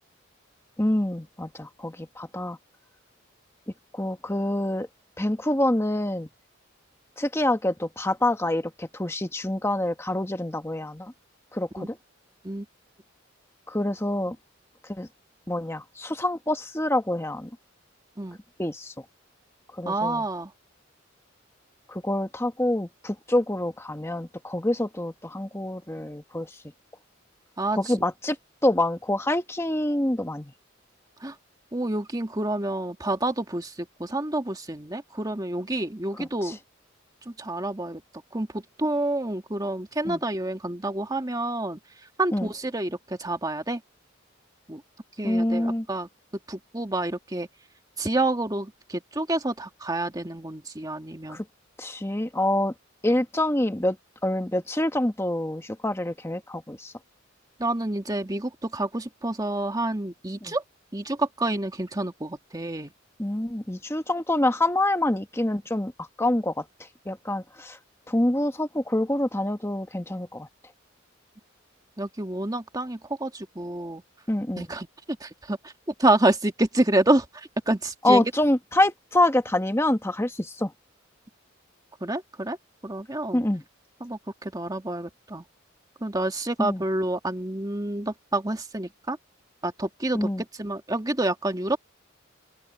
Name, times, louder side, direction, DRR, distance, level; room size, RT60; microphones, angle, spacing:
voice 1, 0.8-2.6 3.9-4.9 5.2-6.3 7.2-11.1 11.5-12.0 13.7-14.4 14.9-15.1 15.5-17.5 18.6-18.9 19.8-20.2 21.9-26.5 27.7-28.4 28.6-30.5 36.2-36.5 40.0-40.2 42.3-42.5 45.2-45.9 51.3-51.4 51.8-52.7 53.0-54.0 54.2-56.9 60.4-60.5 63.2-66.6 67.0-67.8 68.1-70.5 74.3-74.6 78.0-80.7 83.3-83.6 86.6-86.8 90.1-90.4, left 1 dB, 15° left, 1.2 m, -26 dB
voice 2, 19.9-20.5 27.6-27.8 31.2-31.3 31.7-36.6 37.3-38.0 38.3-41.8 42.2-43.8 44.7-44.8 45.2-46.1 46.5-47.5 48.0-51.4 57.6-60.6 60.9-62.9 72.0-74.0 74.6-74.9 75.2-75.7 76.0-78.3 82.0-82.6 82.8-83.4 84.0-85.4 86.0-89.2 89.6-90.3 90.6-91.8, right 2 dB, 20° right, 1.9 m, -28 dB
open air
head